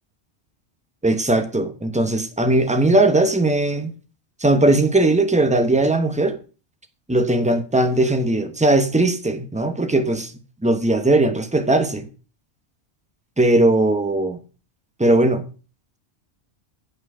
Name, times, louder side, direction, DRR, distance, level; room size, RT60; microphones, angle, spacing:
voice 1, 1.0-3.9 4.4-6.4 7.1-10.3 10.6-12.1 13.4-14.4 15.0-15.4, right 2 dB, 5° right, 1.0 m, -18 dB
9.0 x 7.8 x 4.9 m
omnidirectional pair, 1.1 m